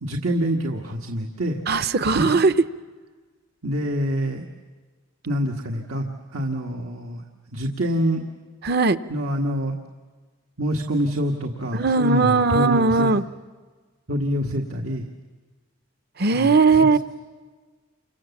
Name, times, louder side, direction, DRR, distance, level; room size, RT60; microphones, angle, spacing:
voice 1, 0.0-1.6 2.1-2.3 3.6-4.4 5.2-7.2 7.5-8.2 9.1-9.7 10.6-13.1 14.1-15.1 16.3-16.5 16.8-17.0, equal, 85° right, 2 dB, 1.6 m, -26 dB
voice 2, 1.7-2.5 8.6-9.0 11.7-13.2 16.2-17.0, right 4 dB, 50° right, 12 dB, 0.7 m, -18 dB
29.0 x 25.5 x 7.2 m, 1.4 s
head